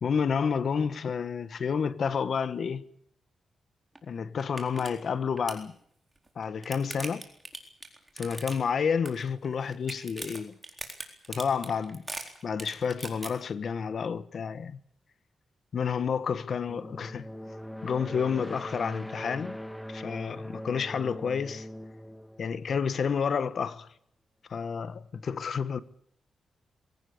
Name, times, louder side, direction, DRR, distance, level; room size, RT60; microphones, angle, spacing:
voice 1, 0.0-2.9 4.0-5.7 6.3-7.3 8.2-10.6 11.3-12.1 12.4-14.8 15.7-17.3 17.8-19.6 19.9-21.7 22.4-23.9 24.5-25.8, left 6 dB, 55° left, 1.4 m, -30 dB
sound 1, 4.0-4.1 4.4-4.9 5.2-5.6 6.3-8.8 9.1-9.5 9.7-13.3, right 2 dB, 15° right, 4.2 m, -39 dB
sound 2, 16.7-23.3, equal, 5° left, 1.4 m, -41 dB
22.0 x 18.0 x 8.6 m
cardioid pair, 120°, 0 cm